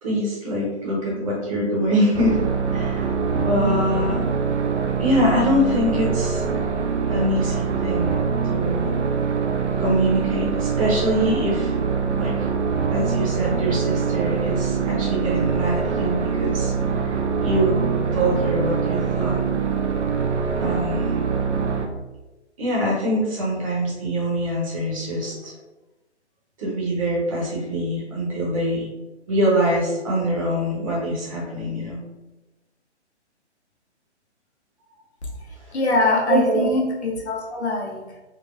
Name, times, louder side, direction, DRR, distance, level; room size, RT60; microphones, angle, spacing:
voice 1, 0.0-2.4 2.7-4.2 5.0-6.4 7.1-8.2 8.5-8.9 9.8-11.7 12.2-12.5 12.9-16.7 17.4-19.4 20.6-21.2 22.6-25.5 26.6-28.9 29.3-32.0 36.3-36.7, equal, 30° right, -5 dB, 1.0 m, -24 dB
sound 1, 2.1-21.9, right 5 dB, 80° right, 0.6 m, -24 dB
voice 2, 35.7-38.2, left 2 dB, 65° left, -2 dB, 1.0 m, -23 dB
3.7 x 2.3 x 2.5 m, 1.1 s
hypercardioid pair, 150°, 35 cm